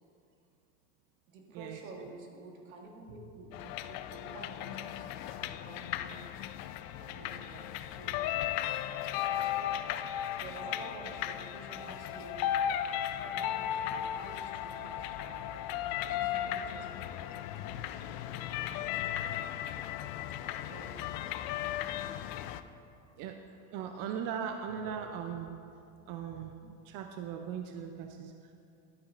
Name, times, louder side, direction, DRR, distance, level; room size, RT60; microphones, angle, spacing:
voice 1, 1.3-6.3 7.0-8.2 9.7-12.5 13.2-15.5 15.9-19.9 20.6-21.0 23.0-23.2 24.8-24.9, right 3 dB, 85° right, 1 dB, 1.7 m, -51 dB
sound 1, 3.5-22.6, left 11 dB, 55° left, 0.5 m, -36 dB
voice 2, 23.7-25.5 26.1-28.5, right 7 dB, 55° right, 5 dB, 0.7 m, -39 dB
12.0 x 9.6 x 2.5 m, 2.5 s
supercardioid pair, 105°, 41 cm